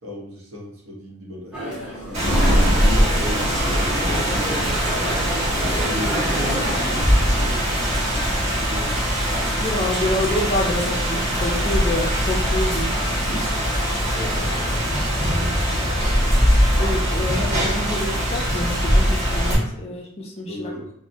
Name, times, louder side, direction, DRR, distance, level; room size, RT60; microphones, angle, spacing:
voice 1, 0.0-2.3 2.7-4.8 5.4-9.0 14.1-15.4 16.2-16.4 20.4-20.9, left 1 dB, 75° right, -3 dB, 0.8 m, -35 dB
sound 1, 1.5-7.0, equal, 5° right, 0.9 m, -28 dB
Rain, 2.1-19.6, equal, 30° right, 1.2 m, -21 dB
voice 2, 9.6-13.5 15.2-15.6 16.8-20.7, left 1 dB, 30° left, -1 dB, 0.3 m, -28 dB
3.3 x 2.0 x 2.6 m, 0.73 s
head